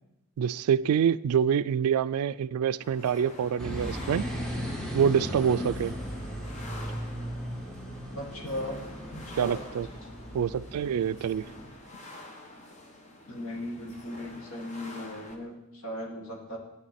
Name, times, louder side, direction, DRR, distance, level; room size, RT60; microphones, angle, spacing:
voice 1, 0.4-4.3 4.9-5.9 9.3-9.9 10.3-11.5, right 8 dB, 85° right, 0.3 m, -26 dB
sound 1, 2.8-15.3, left 2 dB, 35° left, 1.3 m, -47 dB
sound 2, 3.6-11.6, equal, 5° left, 1.8 m, -37 dB
voice 2, 8.1-8.8 9.1-9.6 13.3-16.6, left 1 dB, 70° left, 1.7 m, -37 dB
13.5 x 9.5 x 4.3 m
head